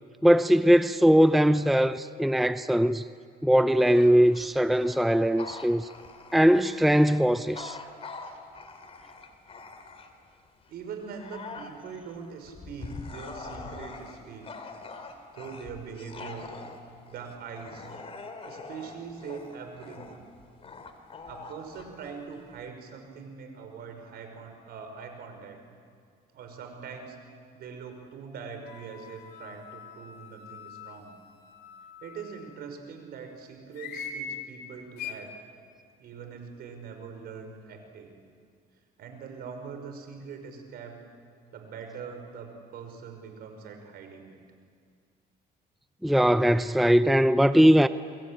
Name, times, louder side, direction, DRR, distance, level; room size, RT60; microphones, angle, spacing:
voice 1, 0.2-3.0 3.4-5.9 6.3-7.8 46.0-47.9, equal, ahead, 0.6 m, -20 dB
Bark / Growling, 3.8-10.3 10.8-22.7, left 4 dB, 35° left, 3.0 m, -44 dB
voice 2, 10.7-14.5 15.3-16.5 17.0-17.9 18.4-20.3 21.2-25.6 26.3-27.2 27.5-31.1 32.0-35.3 36.0-38.2 39.0-41.0 41.5-44.4, right 6 dB, 70° right, 5.6 m, -42 dB
sound 1, 28.6-32.5 33.7-34.2 35.0-35.1, left 5 dB, 70° left, 3.2 m, -43 dB
28.5 x 22.5 x 9.0 m
cardioid pair, 110°, 17 cm